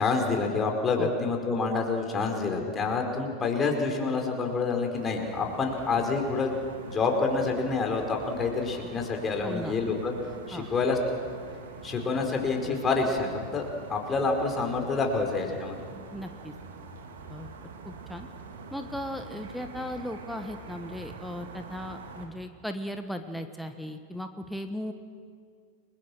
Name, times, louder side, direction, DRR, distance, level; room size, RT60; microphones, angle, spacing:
voice 1, 0.0-6.5 6.8-10.1 10.5-11.0 11.8-15.8, left 4 dB, 20° left, 2 dB, 4.8 m, -27 dB
sound 1, 4.9-22.3, right 4 dB, 60° right, 3.0 m, -45 dB
voice 2, 9.4-9.7 10.5-10.7 16.1-16.5 17.3-17.5 17.8-18.3 18.7-24.9, left 1 dB, ahead, 6 dB, 1.5 m, -37 dB
30.0 x 22.5 x 6.4 m, 2.1 s
figure-of-eight pair, 90°, 0 cm